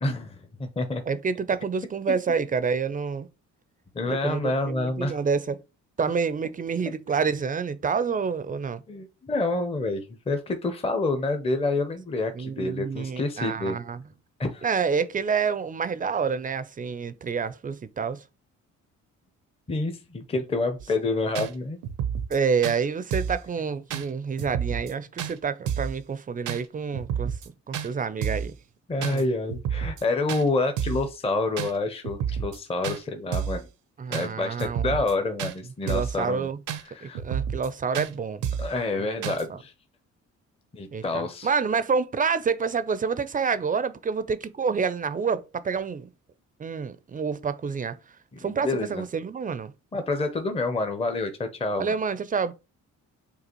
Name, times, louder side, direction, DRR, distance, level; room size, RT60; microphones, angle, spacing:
voice 1, 0.0-1.0 2.1-2.2 3.9-5.2 8.9-13.8 14.4-14.7 19.7-21.8 28.9-33.7 34.1-36.5 36.8-37.2 38.6-39.7 40.7-41.5 48.4-49.0 49.9-52.0, left 2 dB, 20° left, 0.6 m, -28 dB
voice 2, 1.1-3.3 4.1-5.6 6.0-8.8 12.3-14.0 14.6-18.2 22.3-28.5 29.1-29.2 34.0-34.9 35.9-36.6 37.0-38.4 39.2-39.6 40.9-46.1 46.6-48.0 48.4-49.7 51.8-52.5, right 5 dB, 30° right, 0.4 m, -28 dB
sound 1, 20.8-20.9 21.3-21.5 21.8-22.4 22.6-22.8 23.1-23.4 23.9-24.1 24.4-24.9 25.2-25.3 25.7-26.0 26.5-26.6 26.9-27.5 27.7-27.9 28.2-28.5 29.0-29.2 29.5-30.0 30.3-30.4 30.8-31.1 31.6-31.7 32.0-32.6 32.8-33.0 33.3-33.6 34.1-34.3 34.6-35.1 35.4-35.5 35.9-36.2 36.7-36.8 37.1-37.7 37.9-38.1 38.4-38.7 39.2-39.4, right 8 dB, 85° right, 0.7 m, -30 dB
6.7 x 2.4 x 2.9 m
cardioid pair, 90°, 30 cm